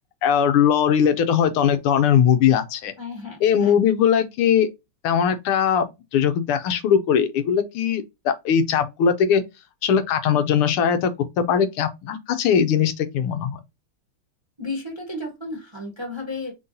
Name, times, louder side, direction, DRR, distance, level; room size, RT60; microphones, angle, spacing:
voice 1, 0.2-2.9 3.4-4.7 5.0-9.4 9.8-11.1 11.4-13.6, left 8 dB, 85° left, 1.6 m, -20 dB
voice 2, 3.0-3.7 14.6-16.5, left 2 dB, 20° right, 0.9 m, -33 dB
4.4 x 3.8 x 2.6 m
omnidirectional pair, 2.4 m